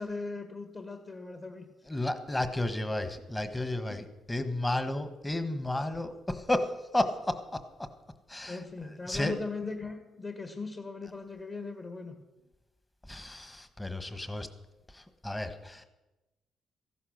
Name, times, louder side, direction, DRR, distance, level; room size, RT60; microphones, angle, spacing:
voice 1, 0.0-1.7 8.5-12.2, left 4 dB, 35° left, 6 dB, 1.7 m, -39 dB
voice 2, 1.9-7.9 8.3-9.3 13.1-14.5 14.9-15.9, left 1 dB, 15° left, 10 dB, 1.3 m, -33 dB
14.5 x 11.0 x 6.5 m, 1.0 s
cardioid pair, 90°, 0 cm